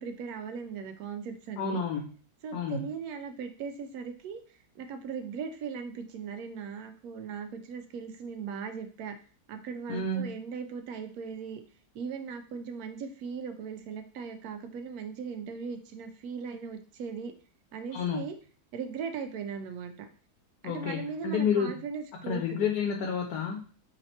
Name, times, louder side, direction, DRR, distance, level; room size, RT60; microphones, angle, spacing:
voice 1, 0.0-1.8 2.4-4.4 4.8-9.2 9.5-11.6 11.9-17.3 17.7-18.4 18.7-20.1 20.6-22.7, right 6 dB, 75° right, 7 dB, 1.0 m, -38 dB
voice 2, 1.6-2.1 2.5-2.8 9.9-10.3 17.9-18.2 20.6-21.7 22.3-23.6, left 5 dB, 75° left, 3 dB, 1.1 m, -30 dB
3.2 x 2.8 x 4.2 m, 0.40 s
omnidirectional pair, 1.7 m